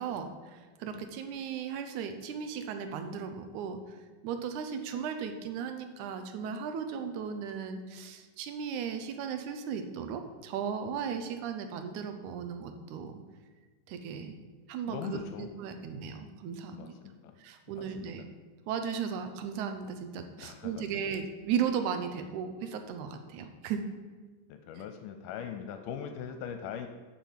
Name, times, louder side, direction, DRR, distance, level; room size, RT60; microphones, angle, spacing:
voice 1, 0.0-4.0 4.2-13.2 13.9-14.4 14.7-16.9 17.4-18.2 18.7-23.8 24.8-24.9, right 7 dB, 75° right, 7 dB, 2.1 m, -36 dB
voice 2, 14.9-15.5 16.7-17.3 17.7-18.1 20.4-20.8 24.5-26.9, left 8 dB, 80° left, 7 dB, 2.1 m, -41 dB
7.2 x 6.1 x 7.4 m, 1.3 s
omnidirectional pair, 3.8 m